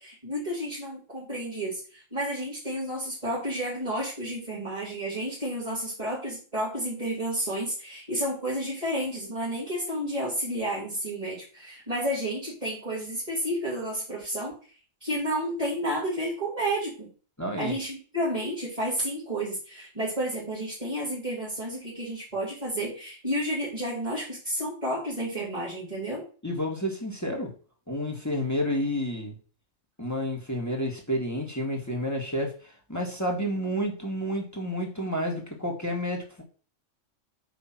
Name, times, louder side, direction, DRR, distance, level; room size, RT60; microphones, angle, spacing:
voice 1, 0.0-14.5 15.0-17.1 17.6-26.2, right 1 dB, 25° right, -7 dB, 3.2 m, -31 dB
voice 2, 17.4-17.7 26.4-27.5 27.9-29.4 30.0-36.4, equal, 15° left, 0 dB, 1.8 m, -30 dB
9.2 x 3.4 x 5.8 m, 0.39 s
omnidirectional pair, 1.4 m